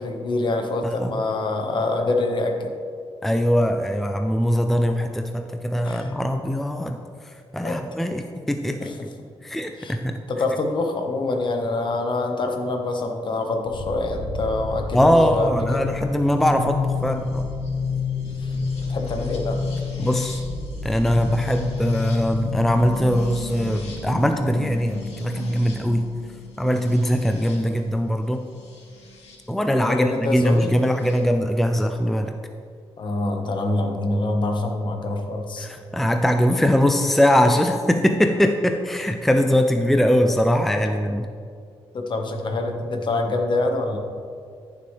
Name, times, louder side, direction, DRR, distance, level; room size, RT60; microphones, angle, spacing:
voice 1, 0.0-2.7 5.8-6.1 7.6-7.9 8.8-9.1 9.8-10.0 10.3-15.8 18.4-18.6 18.9-19.6 29.8-30.8 33.0-35.7 41.9-44.0, left 2 dB, 50° left, 3 dB, 1.3 m, -25 dB
voice 2, 3.2-7.0 7.5-8.9 9.4-10.2 14.9-17.5 20.0-20.4 20.8-26.1 26.6-28.4 29.5-32.3 35.6-41.3, equal, ahead, 5 dB, 0.5 m, -21 dB
sound 1, 13.6-29.4 30.5-31.2, left 4 dB, 85° left, 2.2 m, -30 dB
14.0 x 6.9 x 3.3 m, 2.3 s
cardioid pair, 105°, 11 cm